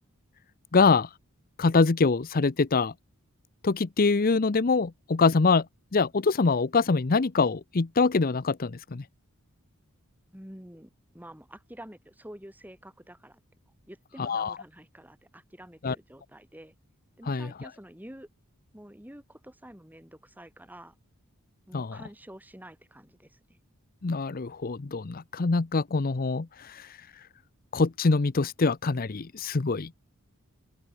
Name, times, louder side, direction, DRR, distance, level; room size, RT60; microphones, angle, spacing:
voice 1, 0.7-1.1 1.6-2.9 3.6-5.7 5.9-9.0 14.2-14.6 15.8-16.0 17.3-17.7 21.7-22.0 24.0-27.3 27.7-29.9, left 4 dB, 40° left, 0.6 m, -24 dB
voice 2, 10.3-13.4 13.9-16.8 17.2-18.3 18.7-21.0 21.7-23.6, right 1 dB, 10° right, 7.0 m, -48 dB
open air
head